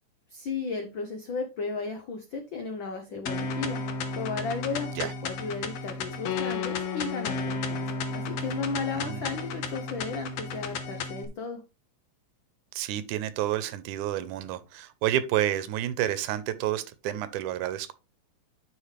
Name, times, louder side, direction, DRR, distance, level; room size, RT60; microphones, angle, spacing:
voice 1, 0.3-3.8 4.2-11.6, left 4 dB, 85° left, 1.0 m, -34 dB
sound 1, 3.3-11.3, left 4 dB, 65° left, 2.0 m, -33 dB
voice 2, 12.7-17.9, right 12 dB, 90° right, 2.1 m, -30 dB
9.6 x 6.1 x 3.2 m
omnidirectional pair, 3.5 m